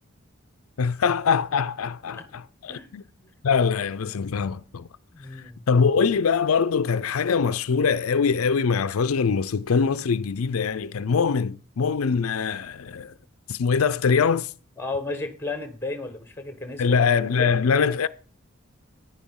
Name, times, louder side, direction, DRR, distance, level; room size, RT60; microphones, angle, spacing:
voice 1, 0.8-3.0 3.4-4.9 5.7-13.1 13.5-14.5 16.8-18.1, left 5 dB, 85° left, 0.5 m, -23 dB
voice 2, 2.7-3.3 5.1-5.6 14.8-17.6, left 2 dB, 10° left, 1.4 m, -34 dB
10.5 x 10.0 x 3.7 m
head